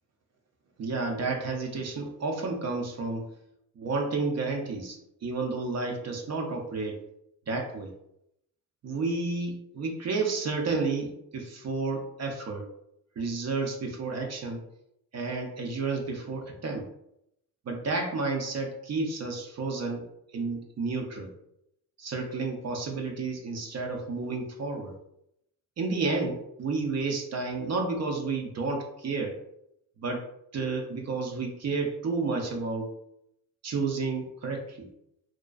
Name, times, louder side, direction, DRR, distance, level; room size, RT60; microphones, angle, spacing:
voice 1, 0.8-3.2 3.8-7.0 7.5-7.9 8.8-12.7 13.2-14.6 15.1-16.9 17.7-20.1 20.3-21.3 22.0-24.9 25.8-29.4 30.0-30.2 30.5-32.9 33.6-34.9, right 3 dB, 45° right, 2 dB, 0.5 m, -31 dB
2.4 x 2.2 x 2.2 m, 0.79 s
cardioid pair, 65°, 36 cm